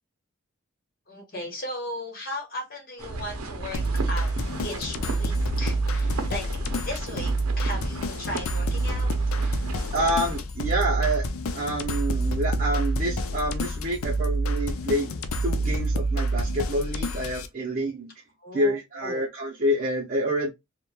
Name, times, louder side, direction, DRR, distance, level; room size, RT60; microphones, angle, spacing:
voice 1, 1.1-3.8 4.1-4.3 4.6-6.4 6.8-9.1 9.4-9.7 18.4-19.2, left 1 dB, 45° left, 1.1 m, -36 dB
sound 1, 3.0-10.4, right 3 dB, 85° right, 0.6 m, -36 dB
sound 2, 3.7-17.5, right 1 dB, 75° left, 0.4 m, -27 dB
voice 2, 9.9-11.3 11.5-15.2 15.4-18.1 18.5-20.5, equal, 40° right, 0.6 m, -27 dB
3.0 x 2.2 x 2.2 m
head